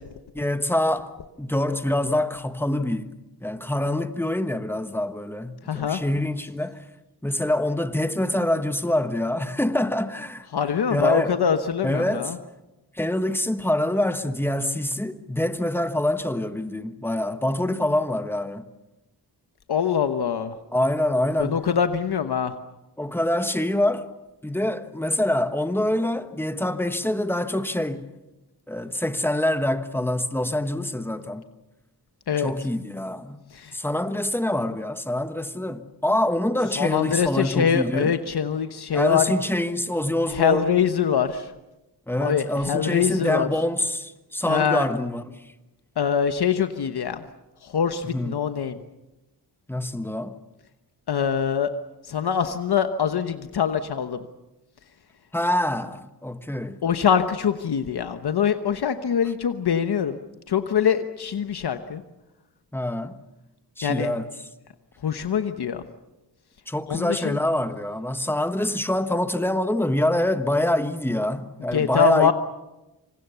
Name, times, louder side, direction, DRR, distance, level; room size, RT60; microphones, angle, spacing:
voice 1, 0.3-1.1 1.4-6.8 7.2-10.5 10.9-11.3 11.8-12.3 12.9-18.7 20.7-21.6 23.0-24.1 24.4-28.1 28.7-31.5 32.4-33.4 33.7-38.1 38.9-40.7 42.1-45.2 48.1-48.3 49.7-50.3 55.3-56.8 62.7-63.2 63.8-64.3 66.7-72.3, left 1 dB, 5° left, 1.3 m, -25 dB
voice 2, 5.6-6.0 10.5-12.4 19.7-20.6 21.4-22.5 32.3-32.5 33.5-33.8 36.8-39.2 40.3-41.5 42.2-43.5 44.5-44.9 46.0-47.2 47.6-48.8 51.1-51.7 52.0-54.3 56.8-60.2 60.5-62.0 63.8-64.1 65.0-65.8 66.9-67.4 71.7-72.3, left 7 dB, 65° left, 1.2 m, -23 dB
26.5 x 26.0 x 6.9 m
wide cardioid pair, 130°, 41 cm